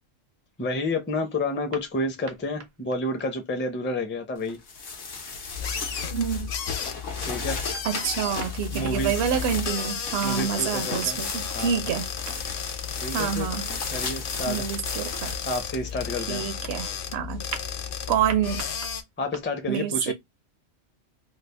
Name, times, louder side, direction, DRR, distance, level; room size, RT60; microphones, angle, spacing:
voice 1, 0.6-4.6 7.2-7.6 8.7-9.2 10.2-11.2 11.5-11.8 13.0-13.5 13.9-14.6 15.5-16.4 19.2-20.1, left 1 dB, 15° left, 0.4 m, -30 dB
sound 1, 1.7-3.3 6.3-9.8 10.2-11.4 11.7-12.6 16.6-16.9 17.5-18.0 18.3-19.5, right 5 dB, 85° right, 1.2 m, -44 dB
sound 2, 4.5-17.0, left 4 dB, 80° left, 1.3 m, -36 dB
sound 3, 5.5-19.0, left 7 dB, 55° left, 0.7 m, -33 dB
voice 2, 6.1-6.5 7.8-12.1 13.1-13.6 14.5-15.3 16.3-17.4 18.1-18.6 19.7-20.1, right 8 dB, 65° right, 0.8 m, -27 dB
3.3 x 2.3 x 3.3 m
omnidirectional pair, 1.3 m